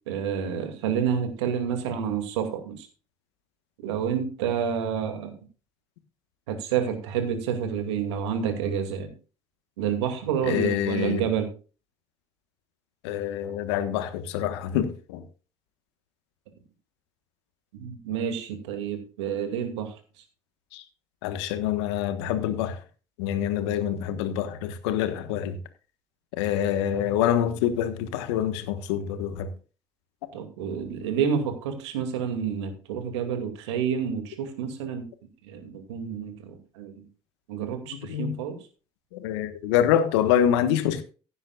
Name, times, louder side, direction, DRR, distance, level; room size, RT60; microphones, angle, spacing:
voice 1, 0.1-2.9 3.8-5.4 6.5-9.1 9.8-11.5 17.7-20.2 30.3-35.1 35.4-37.1 37.5-38.6, right 7 dB, 80° right, 2.4 m, -29 dB
voice 2, 10.4-11.2 13.0-15.2 20.7-20.8 21.2-22.8 23.2-25.6 26.4-29.5 37.9-38.4 39.1-41.0, left 10 dB, 75° left, 1.4 m, -26 dB
16.0 x 9.9 x 2.4 m
hypercardioid pair, 55°, 14 cm